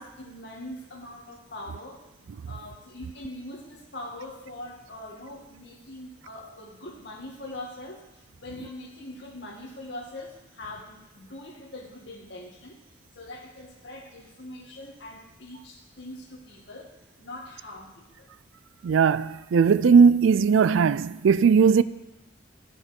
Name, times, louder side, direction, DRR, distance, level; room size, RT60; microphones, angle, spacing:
voice 1, 0.0-2.0 2.5-12.8 13.1-18.3, left 1 dB, 60° left, 2.2 m, -42 dB
voice 2, 18.8-21.8, right 6 dB, 75° right, 0.4 m, -18 dB
14.5 x 6.1 x 5.3 m
head